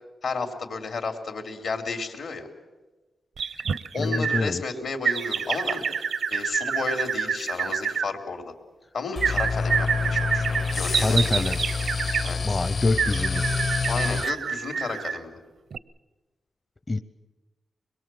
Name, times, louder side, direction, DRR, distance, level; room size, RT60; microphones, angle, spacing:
voice 1, 0.2-2.5 3.9-5.8 6.3-8.5 8.9-11.5 12.2-12.6 13.9-15.4, left 4 dB, 80° left, 5 dB, 3.3 m, -32 dB
sound 1, 3.4-4.5 5.0-8.1 9.2-12.3 13.0-15.2 15.7-15.8, right 6 dB, 80° right, 0.7 m, -27 dB
voice 2, 4.0-4.6 10.9-11.6 12.4-13.5 16.9-17.0, left 2 dB, 30° left, 10 dB, 0.7 m, -25 dB
sound 2, 9.2-14.3, left 4 dB, 60° left, 1.0 m, -27 dB
24.0 x 22.0 x 7.8 m, 1.2 s
cardioid pair, 85°, 0 cm